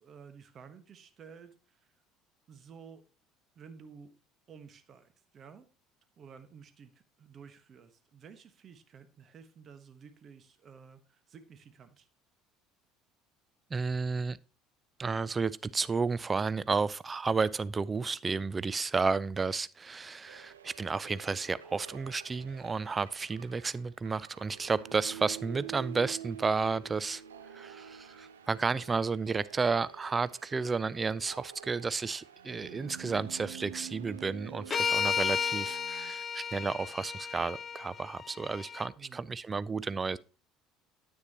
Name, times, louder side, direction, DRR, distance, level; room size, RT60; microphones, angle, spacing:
voice 1, 0.0-2.0 2.5-3.0 3.5-4.1 4.5-5.7 6.2-12.1 39.0-39.3, right 6 dB, 45° right, 1.2 m, -53 dB
voice 2, 13.7-14.4 15.0-27.2 27.5-40.2, right 4 dB, 25° right, 0.4 m, -32 dB
sound 1, 20.3-36.1, right 11 dB, 85° right, 0.6 m, -48 dB
sound 2, 34.7-38.9, left 7 dB, 30° left, 0.5 m, -33 dB
9.6 x 8.7 x 2.9 m
hypercardioid pair, 65°, 0 cm